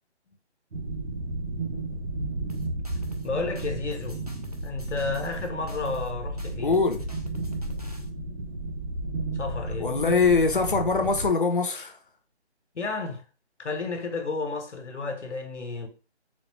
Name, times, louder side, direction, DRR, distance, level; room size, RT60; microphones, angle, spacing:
sound 1, 0.7-11.3, right 2 dB, 65° right, 0.9 m, -33 dB
sound 2, 2.5-3.3 3.6-6.1 6.4-8.1, equal, 35° right, 0.4 m, -46 dB
voice 1, 3.2-4.2 4.6-6.8 9.3-9.9 12.7-13.2 13.6-15.9, left 4 dB, 80° left, 1.1 m, -32 dB
voice 2, 6.6-7.0 9.8-12.0, left 4 dB, 50° left, 0.6 m, -23 dB
4.0 x 2.2 x 3.1 m
hypercardioid pair, 175°, 34 cm